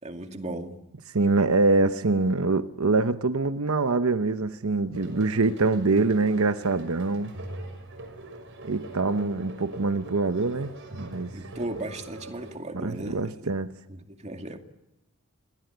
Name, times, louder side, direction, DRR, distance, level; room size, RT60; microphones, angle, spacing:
voice 1, 0.0-0.8 11.3-13.5 13.9-14.6, right 1 dB, 30° right, 2.3 m, -36 dB
voice 2, 1.1-7.3 8.6-11.3 12.8-13.7, right 3 dB, 75° right, 0.9 m, -24 dB
sound 1, 4.9-12.6, right 1 dB, 60° right, 6.1 m, -42 dB
28.5 x 21.0 x 8.0 m
head